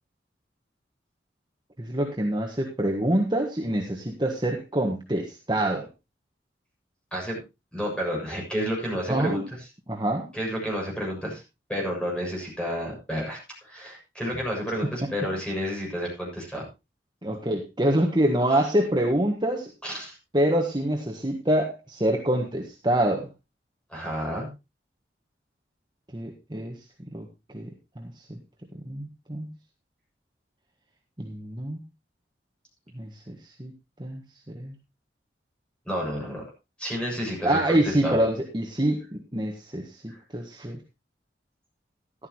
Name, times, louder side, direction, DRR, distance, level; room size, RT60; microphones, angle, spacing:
voice 1, 1.8-5.9 9.1-9.4 9.9-10.3 17.2-19.7 20.3-23.3 26.1-26.8 27.1-27.3 27.5-27.7 28.0-28.4 28.8-29.5 31.2-31.8 32.9-33.7 34.0-34.2 34.5-34.7 37.4-39.0 39.3-40.8, right 1 dB, 25° right, 1 dB, 1.6 m, -26 dB
voice 2, 7.7-9.4 10.3-11.4 11.7-16.7 19.8-20.2 23.9-24.5 35.8-36.4 36.8-38.2 40.1-40.2, equal, 5° left, -2 dB, 6.7 m, -30 dB
13.5 x 12.5 x 3.0 m, 0.25 s
head